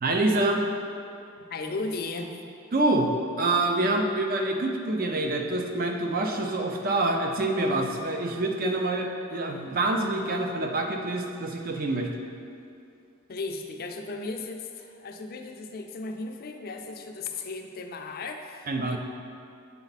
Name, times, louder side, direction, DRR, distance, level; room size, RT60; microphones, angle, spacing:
voice 1, 0.0-0.6 2.7-3.1 3.4-12.1 18.7-19.0, right 2 dB, 45° right, 3 dB, 0.6 m, -26 dB
voice 2, 1.5-2.4 13.3-19.0, left 3 dB, 45° left, 4 dB, 0.5 m, -36 dB
7.0 x 4.4 x 4.1 m, 2.5 s
head